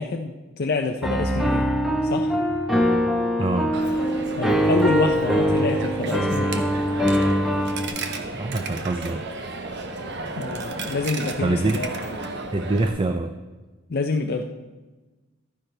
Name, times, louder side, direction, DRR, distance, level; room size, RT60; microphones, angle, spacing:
voice 1, 0.0-1.7 2.0-2.3 4.3-6.6 10.4-11.9 13.9-14.4, left 3 dB, 50° left, 4 dB, 0.6 m, -27 dB
Piano, 1.0-7.9, equal, ahead, 0.9 m, -22 dB
voice 2, 3.4-3.7 8.3-9.3 11.4-11.8 12.5-13.3, right 2 dB, 25° right, 7 dB, 0.4 m, -24 dB
Coin (dropping), 3.7-12.9, right 3 dB, 55° right, 1.0 m, -33 dB
12.5 x 10.0 x 3.3 m, 1.2 s
head